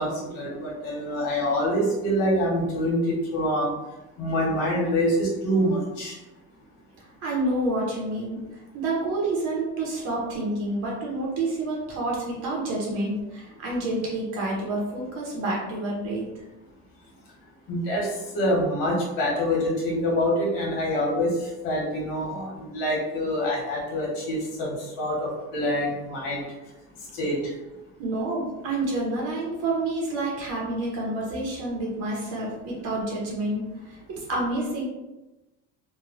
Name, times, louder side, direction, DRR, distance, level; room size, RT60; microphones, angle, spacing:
voice 1, 0.0-3.7 4.2-6.2 17.7-26.4 27.1-27.5, equal, 90° left, -4 dB, 1.3 m, -26 dB
voice 2, 7.0-16.4 28.0-34.8, right 2 dB, 55° right, -3 dB, 0.8 m, -29 dB
3.0 x 2.2 x 2.5 m, 1.0 s
cardioid pair, 165°, 29 cm